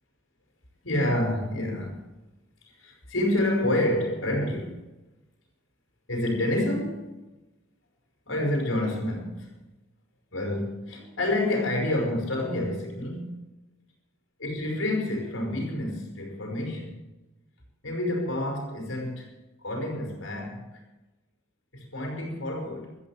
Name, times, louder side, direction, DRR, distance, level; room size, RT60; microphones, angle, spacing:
voice 1, 0.8-2.0 2.8-4.8 6.1-7.1 8.3-9.5 10.3-13.5 14.4-17.0 17.8-19.3 19.6-20.8 21.7-23.0, left 1 dB, 70° left, 5.5 m, -28 dB
15.5 x 13.5 x 4.9 m
head